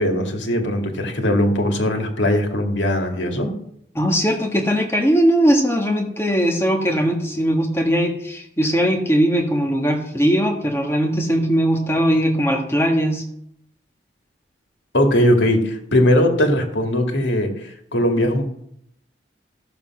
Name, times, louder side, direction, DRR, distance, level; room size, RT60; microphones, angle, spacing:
voice 1, 0.0-3.5 14.9-18.5, left 1 dB, 85° left, 4 dB, 2.2 m, -19 dB
voice 2, 3.9-13.2, equal, 15° left, 2 dB, 1.5 m, -19 dB
14.5 x 7.1 x 6.1 m, 0.74 s
head